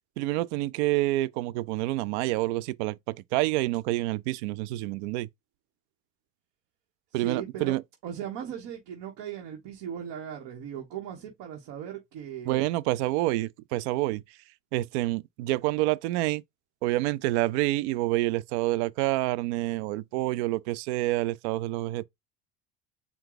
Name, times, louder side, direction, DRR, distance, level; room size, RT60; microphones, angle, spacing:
voice 1, 0.2-5.3 7.1-7.8 12.5-14.2 14.7-16.4 16.8-22.0, right 17 dB, 80° right, 0.5 m, -28 dB
voice 2, 7.1-7.8 8.0-12.7, right 9 dB, 65° right, 1.2 m, -38 dB
4.5 x 2.3 x 3.8 m
supercardioid pair, 100°, 34 cm